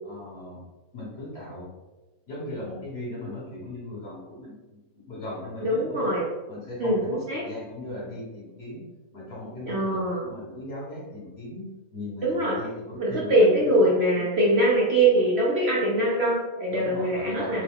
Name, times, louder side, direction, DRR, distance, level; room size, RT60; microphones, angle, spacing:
voice 1, 0.0-0.6 0.9-1.7 2.3-6.1 6.5-8.8 9.1-13.8 14.2-14.3 16.7-17.6, left 1 dB, 45° left, -6 dB, 1.4 m, -38 dB
voice 2, 5.6-6.3 6.8-7.4 9.7-10.2 12.2-12.6 13.0-17.6, right 1 dB, 60° right, -4 dB, 0.8 m, -22 dB
3.6 x 2.2 x 3.5 m, 1.1 s
omnidirectional pair, 1.5 m